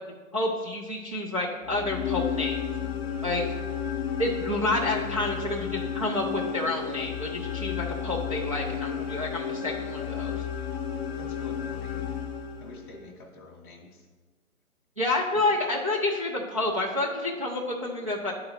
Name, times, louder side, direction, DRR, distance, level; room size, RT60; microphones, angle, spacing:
voice 1, 0.0-2.6 3.2-3.4 4.2-10.3 15.0-18.3, left 2 dB, 25° right, -5 dB, 0.4 m, -29 dB
sound 1, 1.6-13.0, left 8 dB, 45° left, 0.7 m, -32 dB
voice 2, 11.2-12.0 12.6-14.0 15.3-15.4, left 2 dB, 15° left, -2 dB, 0.8 m, -47 dB
9.6 x 3.9 x 4.2 m, 1.4 s
figure-of-eight pair, 150°, 43 cm